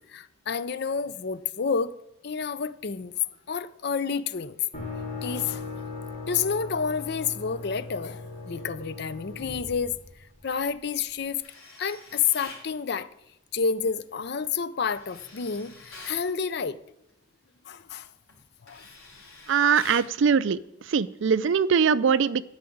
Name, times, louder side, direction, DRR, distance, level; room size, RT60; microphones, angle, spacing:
voice 1, 0.1-1.9 2.2-4.7 5.2-5.7 6.3-9.9 10.4-11.4 11.8-13.1 13.5-16.8 17.7-18.1 18.6-18.9, left 6 dB, 50° left, 0.5 m, -29 dB
sound 1, 4.7-10.6, left 4 dB, 30° left, 3.1 m, -38 dB
Tools, 11.4-12.7 14.8-16.2 17.7-17.9 18.3-20.1, left 3 dB, 90° left, 3.5 m, -46 dB
voice 2, 19.5-20.6 20.9-22.4, right 6 dB, 60° right, 0.4 m, -22 dB
12.5 x 4.8 x 8.5 m
head